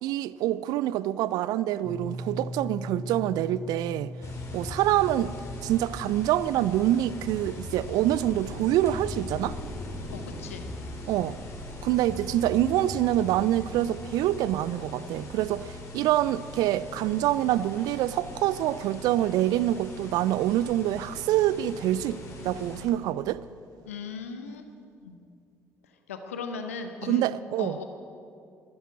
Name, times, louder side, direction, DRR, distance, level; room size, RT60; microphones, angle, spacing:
voice 1, 0.0-4.1 4.5-5.3 5.6-9.6 11.1-11.4 11.8-23.4 27.0-27.8, right 13 dB, 60° right, 0.4 m, -26 dB
sound 1, 1.8-11.7, left 1 dB, 25° right, 3.8 m, -41 dB
sound 2, 4.2-22.8, left 1 dB, 45° left, 3.3 m, -40 dB
voice 2, 10.1-10.7 23.8-24.7 25.0-25.2 26.1-27.3 27.6-27.8, left 5 dB, 80° left, 0.7 m, -37 dB
12.5 x 9.6 x 8.5 m
figure-of-eight pair, 45°, 7 cm